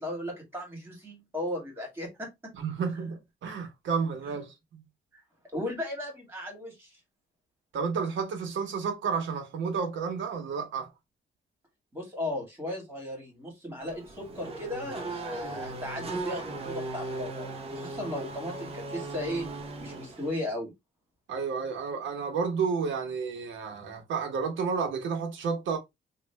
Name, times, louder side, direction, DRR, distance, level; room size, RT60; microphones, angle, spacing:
voice 1, 0.0-2.3 2.9-3.1 4.2-4.4 5.1-5.2 5.5-7.0 11.9-19.5 19.8-20.7, left 1 dB, 10° right, 1.8 m, -36 dB
voice 2, 2.5-4.8 7.7-10.9 21.3-25.8, right 5 dB, 80° right, 1.1 m, -31 dB
Race car auto racing / Accelerating revving vroom, 13.8-20.5, right 2 dB, 30° right, 0.7 m, -38 dB
3.1 x 2.4 x 3.3 m
cardioid pair, 150°, 20 cm